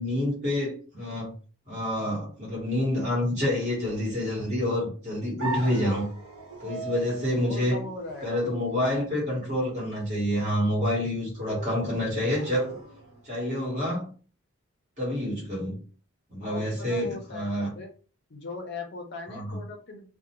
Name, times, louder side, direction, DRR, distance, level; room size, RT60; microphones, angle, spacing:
voice 1, 0.0-1.3 1.7-6.1 6.6-7.8 8.2-12.8 13.2-14.1 15.0-15.8 16.3-17.7 19.3-19.6, left 1 dB, 35° right, 1.3 m, -28 dB
sound 1, 5.4-13.3, right 2 dB, 65° right, 1.0 m, -41 dB
voice 2, 7.3-8.4 16.4-17.9 18.3-20.1, left 3 dB, 45° left, 0.5 m, -39 dB
2.5 x 2.1 x 2.9 m
head